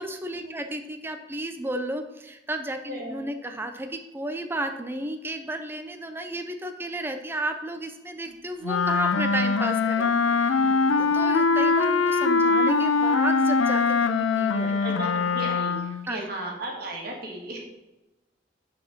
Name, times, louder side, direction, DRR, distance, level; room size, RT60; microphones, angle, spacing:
voice 1, 0.0-10.1 10.3-10.6 11.0-14.8 16.1-16.3, right 1 dB, 10° right, 6 dB, 0.5 m, -33 dB
voice 2, 2.9-3.2 8.2-8.3 10.2-11.2 14.8-17.6, right 1 dB, 50° right, -1 dB, 1.7 m, -37 dB
Wind instrument woodwind instrument, 8.6-16.0, left 4 dB, 85° left, 0.5 m, -22 dB
6.2 x 4.2 x 6.0 m, 1.0 s
head